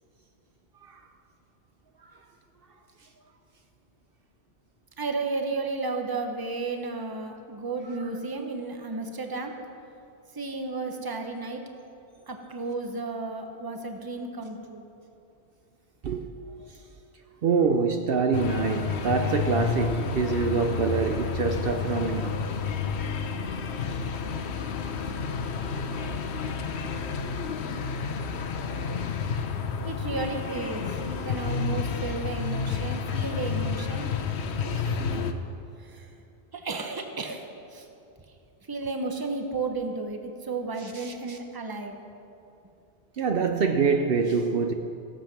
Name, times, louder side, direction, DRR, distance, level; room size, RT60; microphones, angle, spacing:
voice 1, 5.0-9.5 10.3-11.6 12.3-14.8 29.8-34.1 34.6-35.2 35.8-36.1 36.5-37.9 38.7-42.0, right 3 dB, 20° right, 0.9 m, -33 dB
voice 2, 17.4-22.5 40.8-41.4 43.2-44.7, right 5 dB, 65° right, 0.8 m, -25 dB
sound 1, 18.3-35.3, left 5 dB, 80° left, 1.0 m, -30 dB
16.0 x 7.7 x 6.0 m
omnidirectional pair, 1.1 m